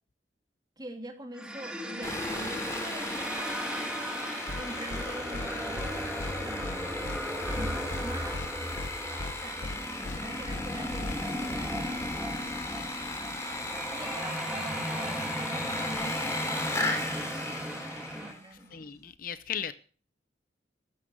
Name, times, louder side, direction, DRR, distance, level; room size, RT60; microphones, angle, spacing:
voice 1, 0.8-3.9 4.5-7.2 7.5-13.1 13.9-18.9, right 1 dB, 20° right, 2.7 m, -45 dB
sound 1, 1.3-18.3, equal, 5° right, 2.1 m, -36 dB
Sawing, 2.0-18.5, left 2 dB, 15° left, 3.1 m, -36 dB
sound 2, 4.5-4.6 4.9-5.0 5.3-5.5 5.8-5.9 6.2-6.3 6.6-6.8 7.0-7.2 7.5-8.0 8.3-8.5 8.8-8.9 9.2-9.3 9.6-9.8 10.0-10.2 10.5-10.6 10.9-11.1, left 2 dB, 80° left, 0.8 m, -37 dB
voice 2, 18.7-19.7, left 8 dB, 50° left, 0.7 m, -36 dB
14.0 x 11.5 x 6.3 m
head